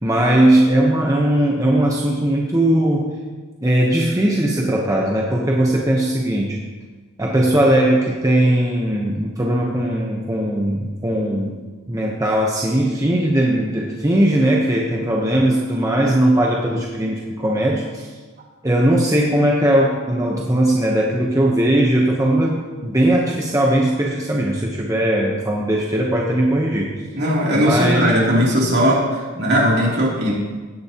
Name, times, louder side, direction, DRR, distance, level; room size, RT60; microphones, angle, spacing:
voice 1, 0.0-3.2 3.6-6.6 7.2-18.1 18.6-26.9 27.5-28.1, right 1 dB, 15° right, -2 dB, 1.0 m, -19 dB
voice 2, 27.1-30.3, equal, 50° right, -4 dB, 3.1 m, -18 dB
16.5 x 10.5 x 3.0 m, 1.3 s
head